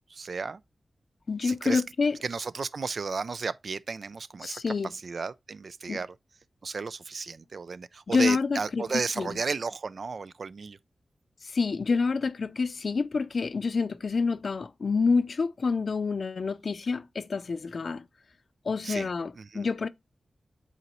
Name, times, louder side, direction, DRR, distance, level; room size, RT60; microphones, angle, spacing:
voice 1, 0.1-0.6 1.4-1.8 2.2-4.6 4.9-6.1 6.6-10.8 18.8-19.1 19.4-19.7, right 4 dB, 70° right, 0.4 m, -33 dB
voice 2, 1.3-2.2 4.4-4.9 5.9-6.0 8.1-9.4 11.4-18.0 18.6-19.9, left 4 dB, 70° left, 0.5 m, -28 dB
8.1 x 4.1 x 3.0 m
cardioid pair, 55°, 0 cm